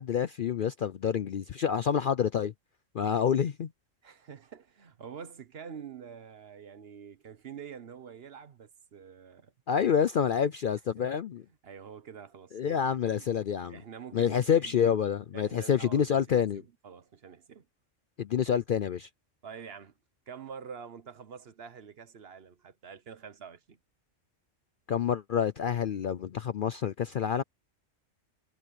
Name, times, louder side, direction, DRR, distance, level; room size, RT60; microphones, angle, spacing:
voice 1, 0.0-2.5 2.9-3.7 9.7-11.4 12.5-13.8 14.1-16.6 18.2-19.1 24.9-27.4, left 8 dB, 55° left, 0.6 m, -28 dB
voice 2, 4.0-9.5 10.3-10.5 11.0-11.1 11.6-13.3 13.7-14.8 15.3-17.7 18.4-18.6 19.4-19.9 20.3-23.8, right 7 dB, 55° right, 1.1 m, -46 dB
omnidirectional pair, 1.3 m